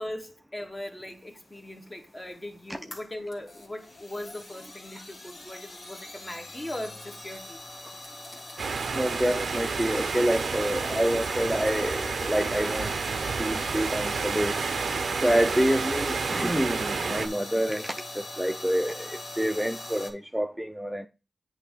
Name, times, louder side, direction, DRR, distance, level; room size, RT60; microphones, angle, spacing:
voice 1, 0.0-7.6 15.3-15.5, left 1 dB, 30° left, 1.5 m, -39 dB
sound 1, 1.3-20.1, left 1 dB, 70° left, 1.7 m, -42 dB
sound 2, 8.6-17.3, right 5 dB, 80° right, 0.6 m, -30 dB
voice 2, 8.9-13.0 13.4-14.8 15.2-21.1, equal, 5° right, 0.5 m, -27 dB
8.1 x 2.8 x 5.1 m
cardioid pair, 50°, 0 cm